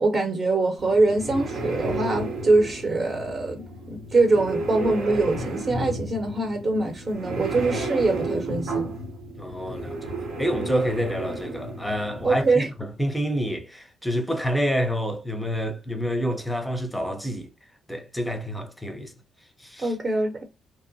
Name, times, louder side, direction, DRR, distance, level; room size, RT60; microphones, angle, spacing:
voice 1, 0.0-8.9 12.2-12.7 19.8-20.4, right 3 dB, 40° right, 0.7 m, -23 dB
sound 1, 0.8-12.6, right 2 dB, 85° right, 0.8 m, -32 dB
voice 2, 9.4-17.5 17.9-19.1 19.6-19.9, equal, 5° left, 0.6 m, -28 dB
2.8 x 2.0 x 2.6 m
cardioid pair, 90°, 0 cm